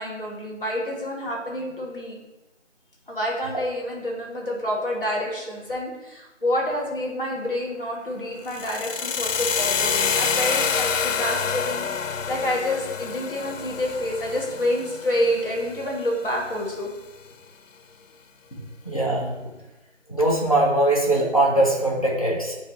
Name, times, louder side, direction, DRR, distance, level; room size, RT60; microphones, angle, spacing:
voice 1, 0.0-2.2 3.1-16.9, left 1 dB, 45° left, -3 dB, 1.7 m, -28 dB
sound 1, 8.4-16.5, left 6 dB, 90° left, 0.5 m, -27 dB
voice 2, 18.8-19.3 20.1-22.5, right 1 dB, 30° left, -3 dB, 0.9 m, -21 dB
8.7 x 3.0 x 4.1 m, 1.0 s
figure-of-eight pair, 170°, 37 cm